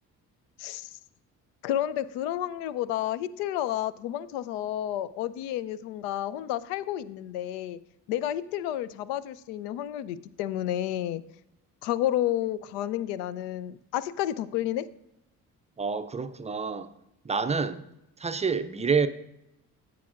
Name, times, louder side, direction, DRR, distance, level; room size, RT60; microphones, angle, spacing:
voice 1, 0.6-0.9 1.6-7.8 8.1-11.2 11.8-14.9, left 12 dB, 65° left, 0.6 m, -31 dB
voice 2, 15.8-16.9 17.2-17.8 18.2-19.1, right 5 dB, 15° right, 0.5 m, -27 dB
15.0 x 5.8 x 2.5 m
figure-of-eight pair, 45°, 46 cm